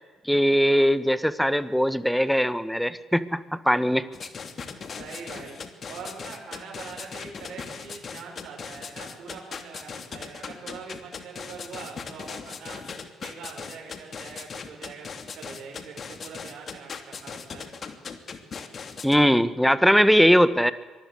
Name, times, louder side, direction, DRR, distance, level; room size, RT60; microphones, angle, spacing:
voice 1, 0.3-4.1 19.0-20.7, equal, ahead, 14 dB, 1.8 m, -20 dB
sound 1, 4.1-19.2, left 5 dB, 50° left, 2.8 m, -38 dB
voice 2, 5.0-5.6 5.9-12.8 13.2-17.7, right 5 dB, 60° right, -1 dB, 6.0 m, -43 dB
24.5 x 19.5 x 8.5 m, 1.3 s
hypercardioid pair, 50°, 0 cm